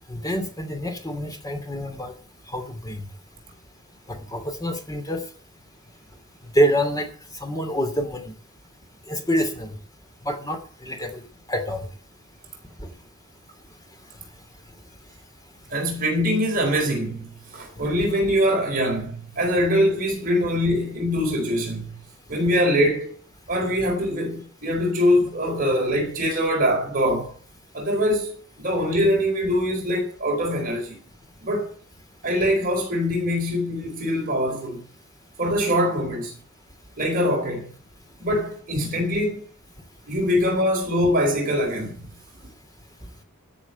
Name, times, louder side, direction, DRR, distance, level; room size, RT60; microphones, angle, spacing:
voice 1, 0.1-2.1 2.5-3.0 4.1-5.2 6.5-7.1 7.4-8.3 9.1-9.8 10.2-11.2 11.5-11.9, equal, 20° left, 2.9 m, -26 dB
voice 2, 15.7-21.9 22.3-23.1 23.5-27.3 27.7-31.0 31.4-31.7 32.2-34.8 35.4-36.3 37.0-37.7 38.2-39.4 40.1-42.1, equal, 45° right, 4.8 m, -23 dB
13.0 x 6.9 x 9.5 m
head